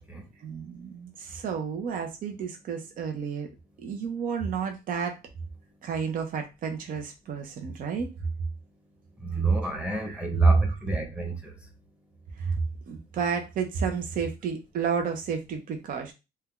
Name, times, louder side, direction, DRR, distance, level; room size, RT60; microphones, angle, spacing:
voice 1, 0.4-3.5 3.8-5.2 5.8-8.1 9.9-10.2 12.4-12.6 12.9-16.1, right 6 dB, 55° right, 0.8 m, -31 dB
voice 2, 9.2-11.5, right 2 dB, 5° right, 1.0 m, -32 dB
2.7 x 2.3 x 3.6 m
cardioid pair, 110°, 17 cm